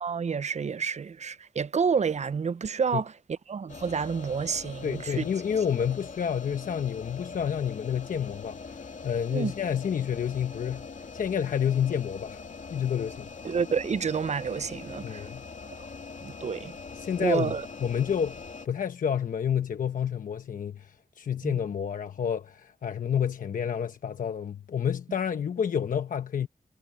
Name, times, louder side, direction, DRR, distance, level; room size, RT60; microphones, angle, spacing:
voice 1, 0.0-5.3 9.3-9.5 13.4-15.3 16.2-16.7 17.2-17.6 21.4-21.6, right 6 dB, 55° right, 0.6 m, -29 dB
sound 1, 3.7-18.7, left 4 dB, 65° left, 2.4 m, -42 dB
voice 2, 4.8-10.9 11.1-12.4 12.7-13.3 15.0-15.4 16.9-17.5 17.8-18.4 18.6-26.5, left 8 dB, 80° left, 1.0 m, -29 dB
cardioid pair, 50°, 14 cm